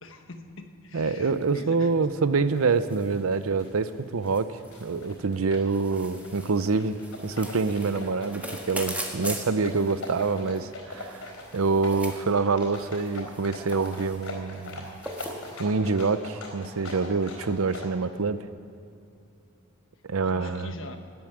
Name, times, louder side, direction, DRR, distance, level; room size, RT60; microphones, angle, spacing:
voice 1, 0.0-2.0 20.2-21.0, left 2 dB, 65° left, 6 dB, 1.3 m, -43 dB
voice 2, 0.9-4.5 4.8-7.0 7.2-8.4 8.7-15.0 15.6-18.4 20.1-20.7, right 4 dB, 80° right, 13 dB, 0.6 m, -26 dB
sound 1, 1.0-15.6, right 1 dB, 5° right, 1.5 m, -42 dB
sound 2, 2.4-17.9, left 2 dB, 90° left, 4.1 m, -42 dB
13.5 x 11.0 x 8.7 m, 2.5 s
head